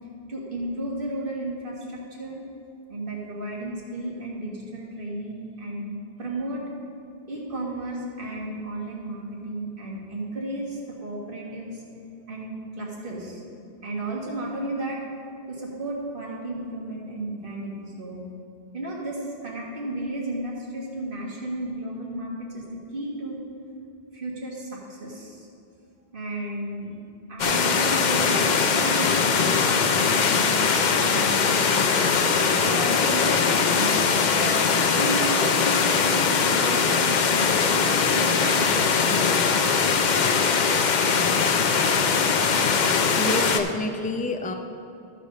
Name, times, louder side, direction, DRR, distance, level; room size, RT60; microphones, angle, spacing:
voice 1, 0.3-2.4 2.9-6.6 7.3-11.8 12.3-13.4 13.8-15.0 15.5-18.2 18.7-22.7 22.9-23.4 24.1-25.5 26.1-27.0 27.3-31.8 32.6-33.9 34.3-34.7 35.0-39.5, right 1 dB, 60° right, -3 dB, 1.8 m, -33 dB
sound 1, 27.4-43.6, left 5 dB, 55° left, 0.7 m, -21 dB
voice 2, 43.2-44.5, left 2 dB, 15° left, 5 dB, 0.3 m, -28 dB
13.5 x 5.0 x 5.2 m, 2.6 s
omnidirectional pair, 1.0 m